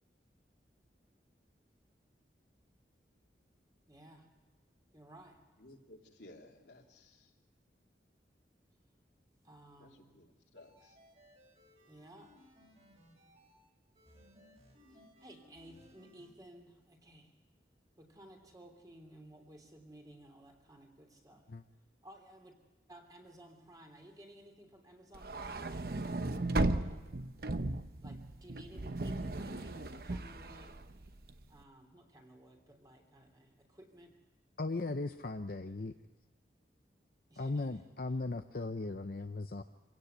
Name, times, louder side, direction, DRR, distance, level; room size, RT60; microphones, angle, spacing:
voice 1, 3.9-4.2 4.9-5.4 9.4-10.0 11.9-12.3 15.2-17.3 18.0-21.4 22.0-22.5 22.9-25.8 28.0-29.8 30.0-30.8 31.5-34.1 37.3-37.8, right 1 dB, 20° right, 3 dB, 3.3 m, -56 dB
voice 2, 5.6-7.3 9.8-9.9 10.1-10.3 10.5-11.0, left 1 dB, 80° left, 1 dB, 2.9 m, -56 dB
sound 1, 10.6-13.5 13.9-16.3, left 1 dB, 35° right, 5.8 m, -62 dB
sound 2, 25.1-31.5, right 2 dB, 55° right, 0.9 m, -36 dB
voice 3, 34.6-35.9 37.4-39.6, left 3 dB, 55° left, 7 dB, 0.7 m, -37 dB
26.0 x 17.0 x 8.1 m, 1.2 s
head